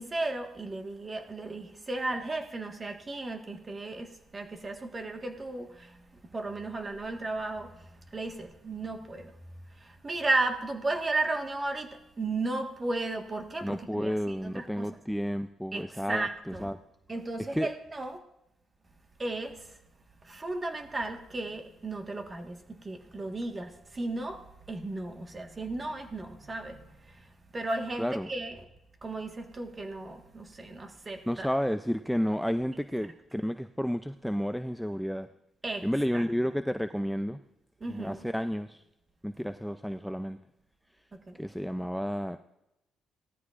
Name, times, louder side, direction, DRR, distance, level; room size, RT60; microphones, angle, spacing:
voice 1, 0.0-9.3 9.7-14.9 15.7-16.7 17.1-18.2 19.2-19.8 20.2-28.6 29.0-31.5 35.6-35.9 36.1-36.2 37.8-38.3 41.3-41.4, right 2 dB, 30° right, 1.5 m, -35 dB
voice 2, 13.6-16.3 16.6-16.8 17.5-17.7 28.0-28.3 31.2-35.3 35.8-37.4 37.9-38.8 39.2-40.4 41.4-42.4, equal, ahead, 0.4 m, -31 dB
18.5 x 13.5 x 2.5 m
cardioid pair, 90°, 0 cm